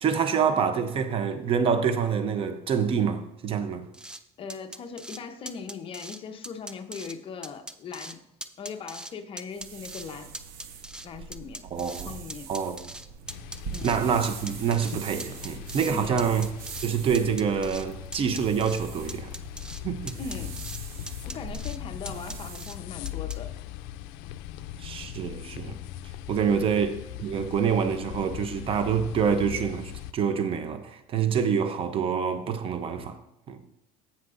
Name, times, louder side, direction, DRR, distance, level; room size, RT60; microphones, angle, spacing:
voice 1, 0.0-3.9 11.7-12.1 12.5-12.9 13.8-16.5 16.8-19.3 19.8-20.1 24.8-25.8 26.3-33.2 33.5-33.6, right 7 dB, 35° right, 0.7 m, -26 dB
sound 1, 3.9-4.2 4.5-5.2 5.5-6.2 6.4-7.1 7.4-8.1 8.4-9.1 9.4-10.0 10.3-12.0 12.3-14.0 14.2-14.9 15.2-15.9 16.2-16.9 17.1-17.9 18.1-18.8 19.1-19.8 20.1-20.8 21.1-21.8 22.0-22.8 23.0-23.4, right 1 dB, 5° right, 0.4 m, -40 dB
voice 2, 4.4-8.2 8.6-10.3 11.0-12.5 13.7-13.9 15.9-16.3 20.2-20.6 21.2-23.5 26.5-26.7, left 5 dB, 35° left, 0.8 m, -39 dB
sound 2, 9.5-22.8, right 6 dB, 70° right, 1.0 m, -43 dB
sound 3, 13.3-30.1, left 13 dB, 70° left, 0.4 m, -40 dB
16.0 x 5.8 x 2.6 m
cardioid pair, 135°, 16 cm